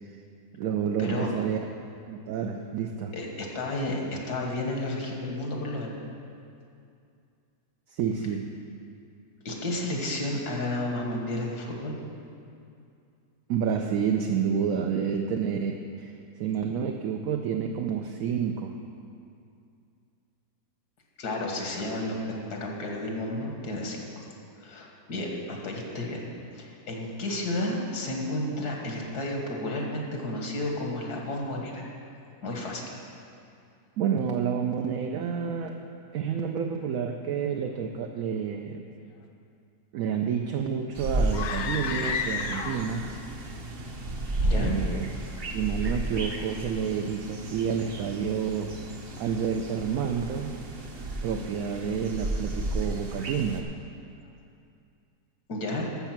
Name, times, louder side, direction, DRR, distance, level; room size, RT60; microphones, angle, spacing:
voice 1, 0.5-1.6 2.0-3.1 7.9-8.5 13.5-18.7 34.0-35.8 36.1-38.8 39.9-43.1 44.5-45.0 45.5-48.7 49.2-50.6 51.2-53.7, right 7 dB, 70° right, 3 dB, 1.0 m, -29 dB
voice 2, 3.1-5.9 9.5-12.0 21.2-24.0 24.6-26.2 26.5-31.8 32.4-32.8 44.4-44.7 55.5-55.9, left 1 dB, 85° left, 0 dB, 2.1 m, -32 dB
sound 1, 40.9-53.6, right 1 dB, 45° right, 1.0 m, -33 dB
Girl Scream in Soundstage, 41.3-43.1, left 6 dB, 65° left, 1.0 m, -31 dB
12.5 x 6.8 x 5.9 m, 2.5 s
omnidirectional pair, 1.6 m